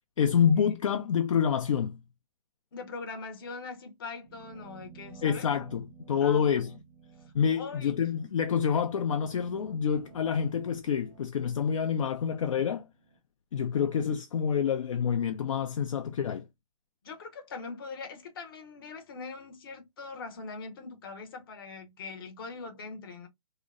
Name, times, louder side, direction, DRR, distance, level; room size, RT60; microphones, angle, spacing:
voice 1, 0.2-2.0 5.2-6.7 7.3-12.9 13.5-16.4, left 7 dB, 60° left, 0.4 m, -27 dB
voice 2, 2.7-5.5 6.2-6.5 7.4-8.1 17.0-23.3, left 4 dB, 40° left, 0.7 m, -42 dB
sound 1, 4.2-13.2, right 5 dB, 15° right, 0.6 m, -53 dB
2.7 x 2.0 x 2.4 m
hypercardioid pair, 165°, 18 cm